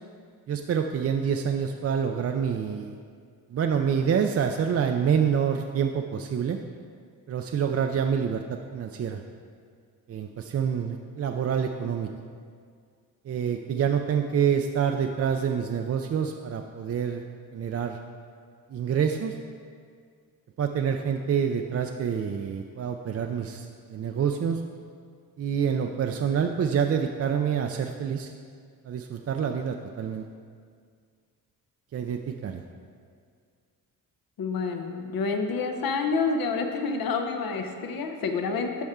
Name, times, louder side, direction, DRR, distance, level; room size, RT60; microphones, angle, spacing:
voice 1, 0.5-2.9 3.5-6.6 7.3-9.2 10.1-12.1 13.3-17.2 17.5-18.0 18.7-19.3 20.6-24.6 25.4-28.3 28.9-30.2 31.9-32.6, right 7 dB, 40° right, 4 dB, 0.4 m, -27 dB
voice 2, 34.4-38.8, left 4 dB, 65° left, 5 dB, 0.8 m, -28 dB
12.0 x 4.4 x 3.6 m, 2.1 s
cardioid pair, 80°, 37 cm